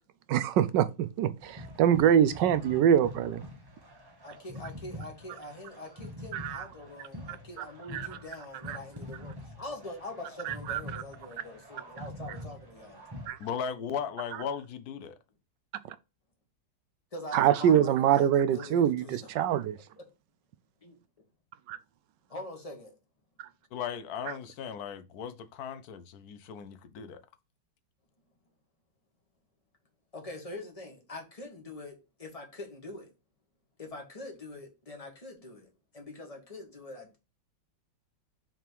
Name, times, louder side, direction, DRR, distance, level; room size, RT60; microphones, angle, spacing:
voice 1, 0.3-3.4 6.3-6.6 7.9-8.1 8.7-8.8 10.4-11.0 13.3-13.4 17.3-19.8 21.7-21.8 23.4-23.5, right 9 dB, 75° right, 1.2 m, -25 dB
sound 1, 1.4-13.3, left 1 dB, 15° right, 0.9 m, -45 dB
voice 2, 4.2-13.0 17.1-19.3 20.8-21.0 22.3-22.9 30.1-31.9 32.2-33.1 33.8-35.7 35.9-37.2, left 2 dB, 20° left, 1.4 m, -43 dB
voice 3, 13.4-15.2 23.7-27.2, left 7 dB, 65° left, 1.0 m, -37 dB
5.8 x 3.5 x 4.5 m
omnidirectional pair, 2.0 m